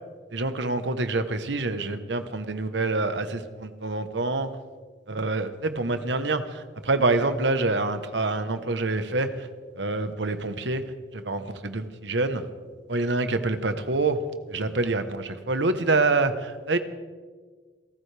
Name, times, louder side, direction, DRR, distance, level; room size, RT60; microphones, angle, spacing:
voice 1, 0.3-4.5 5.1-9.5 9.8-10.8 11.1-12.4 12.9-14.2 14.5-16.8, right 3 dB, 80° right, 9 dB, 1.1 m, -26 dB
28.5 x 14.0 x 3.4 m, 1.5 s
head